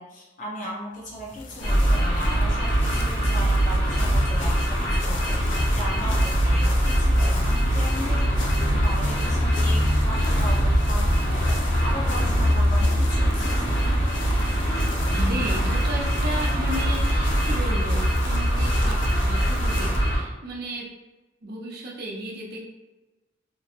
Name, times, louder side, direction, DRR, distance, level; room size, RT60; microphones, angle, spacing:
voice 1, 0.0-11.5 11.8-13.9, equal, 45° left, -4 dB, 0.9 m, -37 dB
sound 1, 1.0-20.1, left 2 dB, 70° left, 0.5 m, -37 dB
sound 2, 1.6-20.2, equal, 85° left, 1.2 m, -22 dB
voice 2, 15.1-20.9 21.4-22.6, right 1 dB, 55° right, -2 dB, 0.6 m, -34 dB
2.9 x 2.2 x 2.9 m, 1.1 s
head